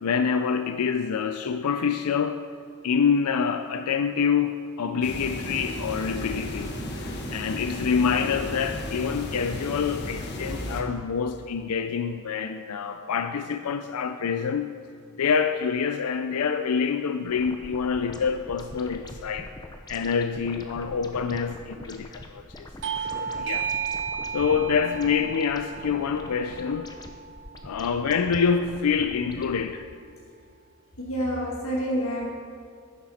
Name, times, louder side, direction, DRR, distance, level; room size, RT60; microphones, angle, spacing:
voice 1, 0.0-2.4 2.8-14.7 15.2-19.5 19.9-22.7 23.1-23.7 24.3-26.9 27.6-29.8, left 6 dB, 90° left, 0.5 m, -26 dB
sound 1, 5.0-10.8, equal, 50° left, 1.4 m, -34 dB
sound 2, 17.3-29.7, left 1 dB, 20° left, 0.7 m, -44 dB
Bell / Doorbell, 22.8-27.9, right 7 dB, 55° right, 0.6 m, -34 dB
voice 2, 31.0-32.3, equal, 70° left, 1.7 m, -28 dB
11.5 x 10.5 x 4.3 m
head